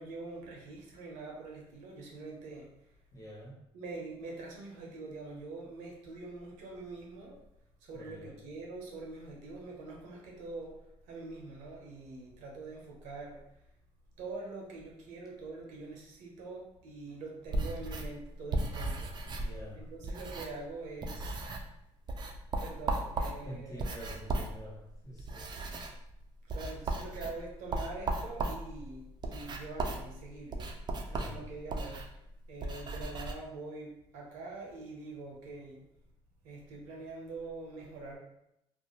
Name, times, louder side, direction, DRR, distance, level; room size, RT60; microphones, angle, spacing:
voice 1, 0.0-2.7 3.7-7.4 7.8-10.8 11.1-13.4 14.2-19.1 19.7-21.4 22.6-24.0 26.5-30.7 31.1-32.0 32.5-35.8 36.4-38.2, right 3 dB, 90° right, -1 dB, 0.7 m, -44 dB
voice 2, 3.1-3.5 7.9-8.4 19.4-19.8 23.4-25.5 31.1-31.5, equal, 25° left, -3 dB, 0.9 m, -47 dB
sound 1, 17.5-20.7 21.0-21.8 22.1-33.3, right 2 dB, 35° right, 0.4 m, -37 dB
2.4 x 2.1 x 3.0 m, 0.80 s
supercardioid pair, 75°, 12 cm